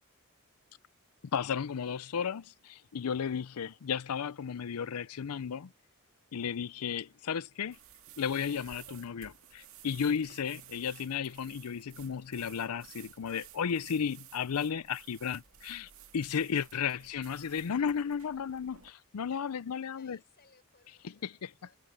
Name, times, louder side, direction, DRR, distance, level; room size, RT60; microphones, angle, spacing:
voice 1, 1.3-5.7 6.3-7.8 8.2-20.2 21.2-21.5, left 7 dB, 85° left, 0.5 m, -34 dB
sound 1, 7.7-18.9, right 10 dB, 65° right, 2.3 m, -55 dB
voice 2, 20.0-21.8, left 4 dB, 45° left, 7.1 m, -65 dB
head